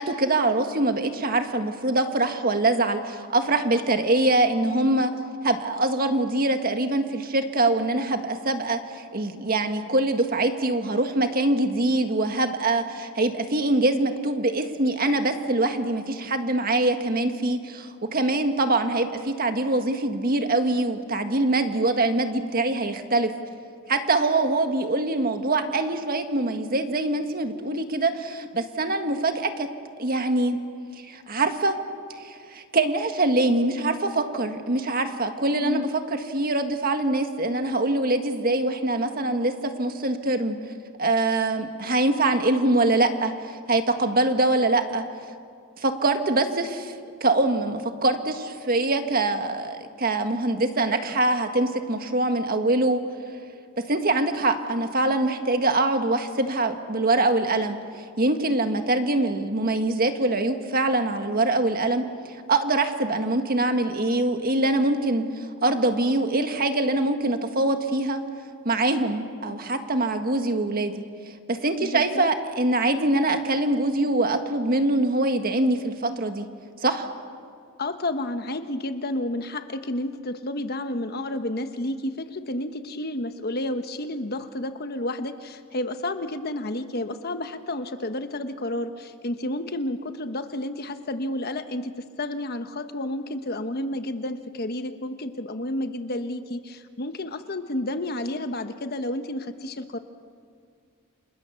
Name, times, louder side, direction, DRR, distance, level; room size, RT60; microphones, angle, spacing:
voice 1, 0.0-5.1 5.4-23.3 23.9-29.7 30.0-30.6 31.1-31.8 32.2-40.6 41.0-45.0 45.8-46.9 47.2-53.0 53.8-62.1 62.5-68.2 68.6-70.9 71.5-76.5 76.8-77.1, right 2 dB, 45° right, 7 dB, 1.7 m, -24 dB
voice 2, 35.5-35.9 71.8-72.3 77.8-100.0, left 1 dB, 50° left, 8 dB, 1.2 m, -31 dB
29.5 x 27.0 x 7.0 m, 2.2 s
head